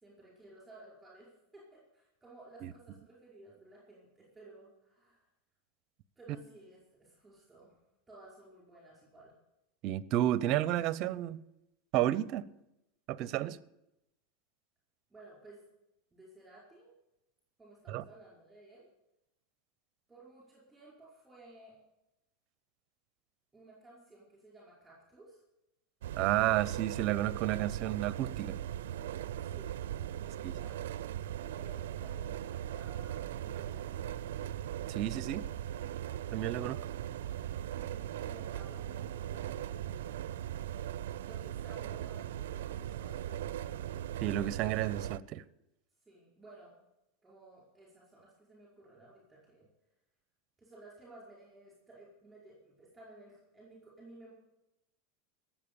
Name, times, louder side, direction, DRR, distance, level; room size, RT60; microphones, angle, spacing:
voice 1, 0.0-5.3 6.1-7.8 8.1-9.4 15.1-15.6 16.1-16.9 17.6-18.9 20.1-21.8 23.5-25.4 29.4-29.8 30.1-30.8 31.5-33.9 36.5-40.0 41.2-43.8 46.0-46.7 47.2-49.7 50.6-54.3, right 2 dB, 5° right, 5.1 m, -56 dB
voice 2, 9.8-11.4 11.9-12.5 13.1-13.6 17.9-18.0 26.2-28.6 30.4-30.6 34.9-35.4 36.3-36.8 44.2-45.4, right 13 dB, 45° right, 0.6 m, -31 dB
sound 1, 26.0-45.2, right 11 dB, 85° right, 0.4 m, -39 dB
17.5 x 7.4 x 7.0 m
supercardioid pair, 140°, 0 cm